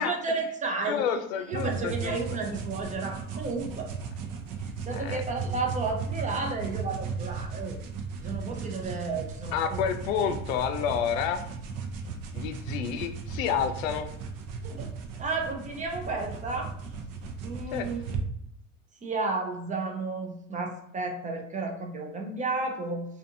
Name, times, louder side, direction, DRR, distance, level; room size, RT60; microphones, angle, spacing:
voice 1, 0.0-1.0 1.5-3.9 4.8-7.8 8.2-9.8 14.6-14.9 15.2-16.7 17.4-18.2 19.0-23.1, right 3 dB, 20° right, 2 dB, 0.5 m, -32 dB
voice 2, 0.9-2.2 5.0-5.2 9.5-11.4 12.3-14.1 17.7-17.9, left 8 dB, 85° left, 8 dB, 0.5 m, -29 dB
sound 1, 1.5-18.2, right 5 dB, 55° right, 0.6 m, -36 dB
2.5 x 2.5 x 2.6 m, 0.75 s
supercardioid pair, 105°, 39 cm